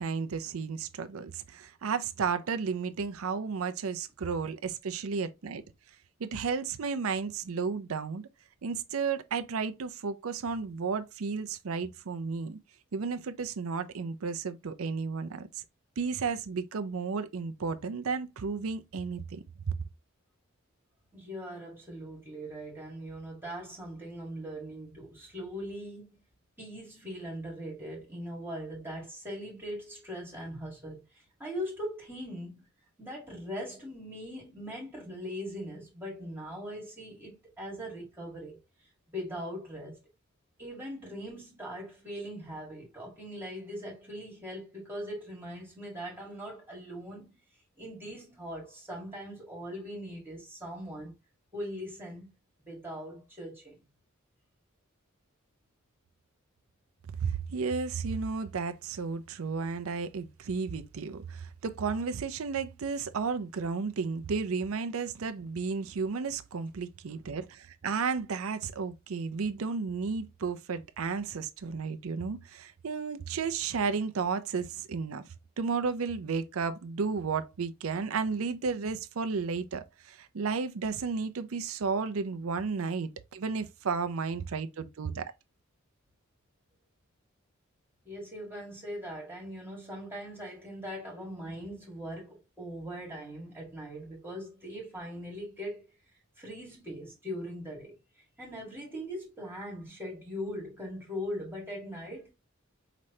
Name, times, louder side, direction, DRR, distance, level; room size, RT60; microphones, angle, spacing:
voice 1, 0.0-5.6 6.2-8.3 8.6-12.6 12.9-15.5 16.0-19.8 57.2-75.2 75.6-85.3, right 5 dB, 85° right, 0.5 m, -33 dB
voice 2, 21.1-26.2 26.6-32.7 33.0-38.6 39.1-40.0 40.6-47.3 47.8-51.2 51.5-52.3 52.6-53.8 88.0-95.9 96.4-102.3, equal, 10° right, 1.7 m, -40 dB
5.0 x 3.2 x 2.7 m
head